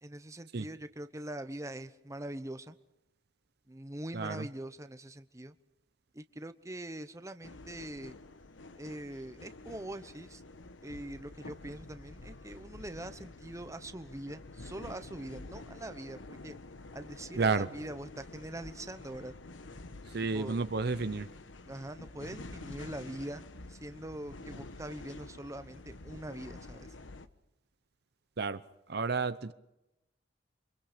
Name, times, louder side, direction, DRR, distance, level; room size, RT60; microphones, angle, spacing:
voice 1, 0.0-2.8 3.7-5.6 6.1-8.1 8.8-10.4 10.8-16.6 16.9-19.3 20.3-20.6 21.6-23.4 23.7-26.9, right 1 dB, 15° right, 0.9 m, -43 dB
voice 2, 4.1-4.4 17.4-17.7 20.1-21.3 28.4-28.6 28.9-29.5, right 4 dB, 60° right, 0.8 m, -31 dB
sound 1, 7.4-27.3, left 2 dB, 90° left, 1.1 m, -49 dB
29.0 x 24.5 x 5.1 m
head